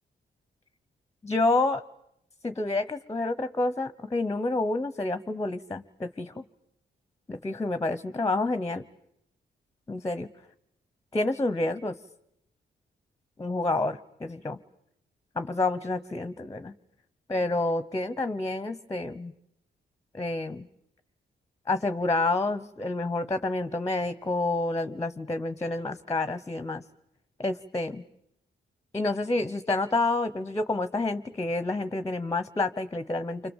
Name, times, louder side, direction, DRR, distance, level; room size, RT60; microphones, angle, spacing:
voice 1, 1.2-1.8 2.4-6.4 7.3-8.8 9.9-10.3 11.1-12.0 13.4-14.6 15.4-16.7 17.3-19.3 20.1-20.6 21.7-26.8 27.4-28.0 28.9-33.5, left 2 dB, 15° left, 11 dB, 1.0 m, -28 dB
29.5 x 26.0 x 7.3 m, 0.77 s
cardioid pair, 105°, 18 cm